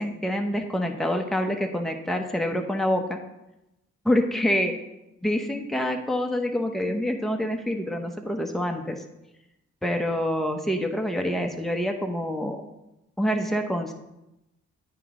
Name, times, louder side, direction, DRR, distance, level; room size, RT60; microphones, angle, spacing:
voice 1, 0.0-3.2 4.0-4.7 5.2-9.0 9.8-12.6 13.2-13.9, left 1 dB, ahead, 3 dB, 1.0 m, -26 dB
9.1 x 4.9 x 3.8 m, 0.93 s
supercardioid pair, 55°, 31 cm